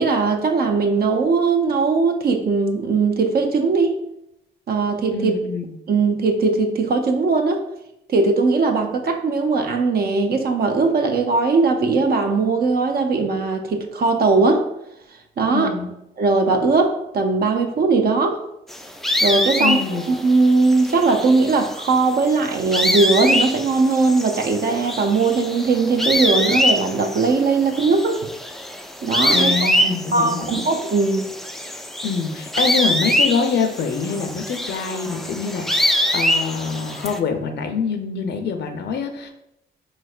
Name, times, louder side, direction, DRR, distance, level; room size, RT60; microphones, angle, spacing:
voice 1, 0.0-4.0 4.7-5.3 5.9-7.6 8.1-14.6 15.4-15.7 16.2-18.4 19.2-28.2 29.0-29.7 30.1-31.3, right 4 dB, 55° right, 5 dB, 0.6 m, -19 dB
voice 2, 5.1-5.7 15.5-15.9 19.6-20.1 29.3-30.6 32.0-39.3, left 5 dB, 70° left, 5 dB, 0.6 m, -25 dB
sound 1, 18.7-37.2, left 1 dB, ahead, 0.3 m, -24 dB
4.1 x 3.1 x 2.4 m, 0.83 s
cardioid pair, 75°, 18 cm